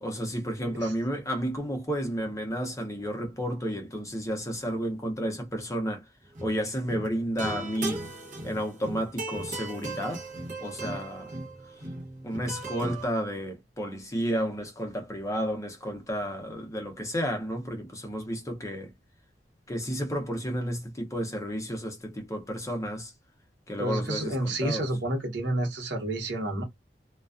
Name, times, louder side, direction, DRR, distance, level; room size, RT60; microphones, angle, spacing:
voice 1, 0.0-6.0 6.4-8.0 8.4-10.3 10.6-11.3 12.2-18.9 19.7-23.1 23.7-24.9, equal, 20° left, 0.6 m, -32 dB
sound 1, 6.3-6.6 6.9-13.1, right 2 dB, 45° right, 0.8 m, -37 dB
voice 2, 23.8-26.6, right 1 dB, 85° right, 0.9 m, -29 dB
2.3 x 2.2 x 2.4 m
head